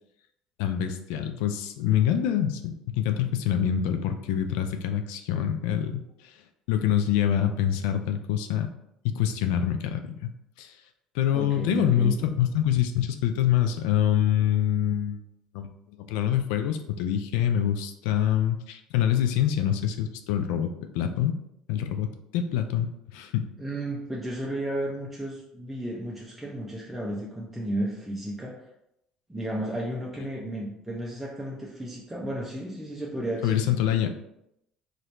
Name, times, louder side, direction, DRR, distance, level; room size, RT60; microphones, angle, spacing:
voice 1, 0.6-6.3 6.7-8.7 9.0-10.3 10.6-10.7 11.1-15.2 15.5-15.7 16.1-21.4 21.7-23.5 33.4-34.1, left 10 dB, 85° left, 7 dB, 0.3 m, -25 dB
voice 2, 11.3-12.1 23.6-28.5 29.3-33.6, right 1 dB, 5° right, -4 dB, 0.6 m, -33 dB
2.8 x 2.6 x 3.2 m, 0.81 s
supercardioid pair, 85°, 2 cm